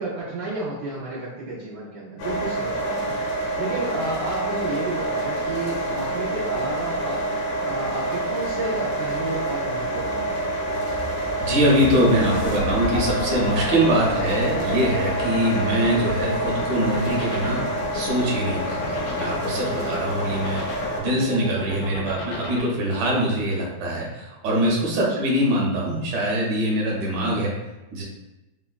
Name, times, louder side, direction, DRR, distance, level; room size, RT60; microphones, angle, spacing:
voice 1, 0.0-3.2 3.6-7.3 7.6-10.4 25.1-25.3, right 2 dB, 85° right, -8 dB, 0.8 m, -31 dB
sound 1, 2.2-21.0, right 1 dB, 85° left, 1.5 m, -27 dB
sound 2, 9.7-15.2, equal, 10° left, 0.5 m, -39 dB
voice 2, 11.4-27.5 27.9-28.0, right 1 dB, 65° right, -3 dB, 1.2 m, -23 dB
sound 3, 12.2-22.6, left 3 dB, 70° left, 1.0 m, -31 dB
3.6 x 2.1 x 2.3 m, 1.0 s
omnidirectional pair, 2.4 m